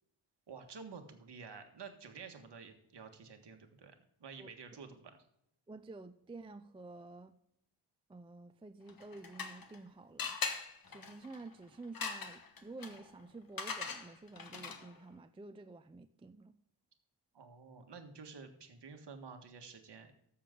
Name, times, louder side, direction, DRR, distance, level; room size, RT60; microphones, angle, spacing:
voice 1, 0.5-3.9 4.2-5.2 17.3-20.2, right 5 dB, 55° right, 5 dB, 1.6 m, -51 dB
voice 2, 5.7-7.4 8.1-10.4 10.9-16.5, right 3 dB, 10° right, 9 dB, 0.4 m, -50 dB
sound 1, 8.9-9.8 10.2-15.0, left 5 dB, 45° left, 1.2 m, -42 dB
13.0 x 7.1 x 3.7 m, 0.76 s
wide cardioid pair, 130°, 49 cm